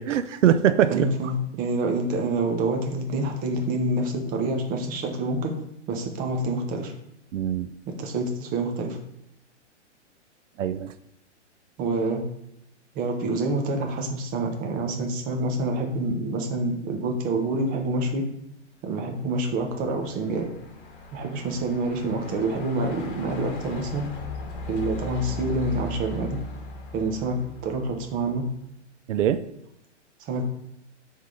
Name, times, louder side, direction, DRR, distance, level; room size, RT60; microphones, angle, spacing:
voice 1, 0.0-1.1 7.3-7.7 10.6-10.9 29.1-29.4, right 10 dB, 80° right, 12 dB, 0.5 m, -22 dB
voice 2, 0.9-5.6 5.9-6.9 7.9-9.0 11.8-12.2 12.9-18.2 18.8-20.5 21.1-24.0 24.7-26.4 26.9-28.4 30.2-30.4, right 2 dB, 25° right, 3 dB, 0.9 m, -27 dB
Truck, 19.2-28.4, left 3 dB, 45° left, 1.5 m, -38 dB
7.8 x 3.7 x 3.9 m, 0.79 s
hypercardioid pair, 140°, 36 cm